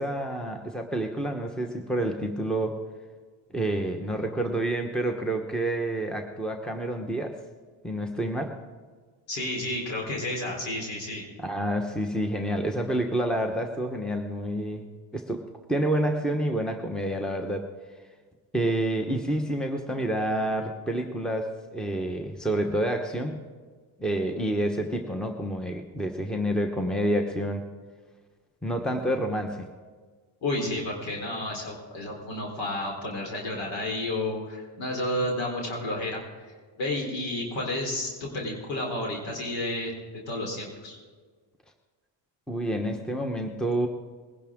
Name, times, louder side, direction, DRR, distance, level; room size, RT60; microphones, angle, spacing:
voice 1, 0.0-2.8 3.5-7.4 7.8-8.6 11.4-15.4 15.7-17.7 18.5-23.4 24.0-27.7 28.6-29.7 42.5-43.9, right 1 dB, ahead, 4 dB, 1.0 m, -28 dB
voice 2, 9.3-11.3 30.4-36.2 36.8-41.0, left 1 dB, 80° left, -1 dB, 4.1 m, -31 dB
20.5 x 11.0 x 3.7 m, 1.5 s
cardioid pair, 110°, 43 cm